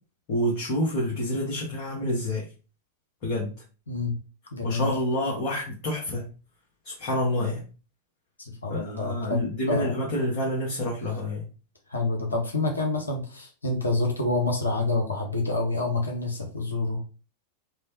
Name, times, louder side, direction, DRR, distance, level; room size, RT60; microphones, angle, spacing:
voice 1, 0.3-2.5 3.2-3.5 4.6-6.3 6.8-7.6 8.7-11.5, left 1 dB, 45° left, -4 dB, 1.1 m, -28 dB
voice 2, 3.9-4.2 4.5-4.9 8.4-9.4 9.7-10.0 11.9-17.0, left 2 dB, 80° left, 1 dB, 0.7 m, -27 dB
3.0 x 2.1 x 2.9 m, 0.34 s
figure-of-eight pair, 90°, 0 cm